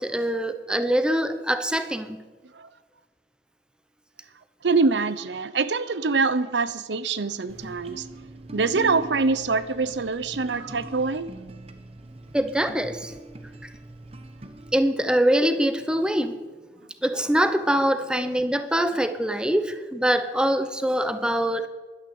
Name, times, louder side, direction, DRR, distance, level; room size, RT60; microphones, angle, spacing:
voice 1, 0.0-2.2 12.3-13.1 14.7-16.4 17.0-21.7, right 1 dB, 5° right, 0.8 m, -23 dB
voice 2, 4.6-8.1 8.5-11.3, right 4 dB, 90° right, 0.8 m, -24 dB
sound 1, 7.5-14.7, right 2 dB, 35° right, 1.1 m, -41 dB
11.5 x 9.8 x 7.9 m
head